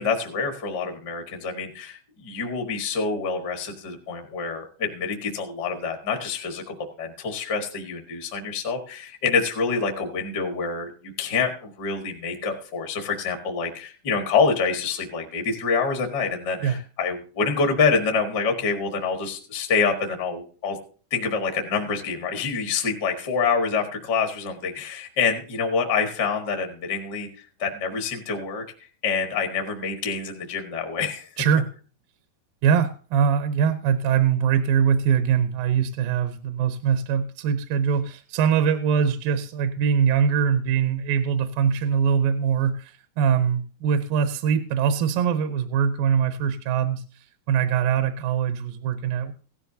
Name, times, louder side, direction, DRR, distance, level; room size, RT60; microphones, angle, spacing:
voice 1, 0.0-20.8 21.1-28.6 29.0-31.3, left 5 dB, 45° left, 4 dB, 1.4 m, -26 dB
voice 2, 32.6-49.3, right 7 dB, 75° right, 10 dB, 2.4 m, -22 dB
16.0 x 12.5 x 2.7 m, 0.38 s
omnidirectional pair, 4.3 m